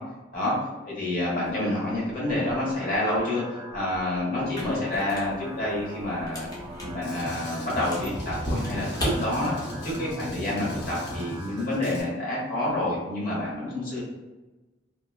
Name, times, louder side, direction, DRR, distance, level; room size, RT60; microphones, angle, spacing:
voice 1, 0.8-3.4 3.7-6.5 6.8-9.5 9.8-14.0, left 1 dB, 50° left, -6 dB, 1.1 m, -28 dB
sound 1, 1.9-11.9, right 1 dB, 25° right, 0.3 m, -43 dB
sound 2, 4.4-9.9, equal, 20° left, 0.6 m, -36 dB
Drum kit, 7.0-12.0, left 1 dB, 70° left, 0.8 m, -36 dB
3.0 x 2.2 x 2.3 m, 1.1 s
head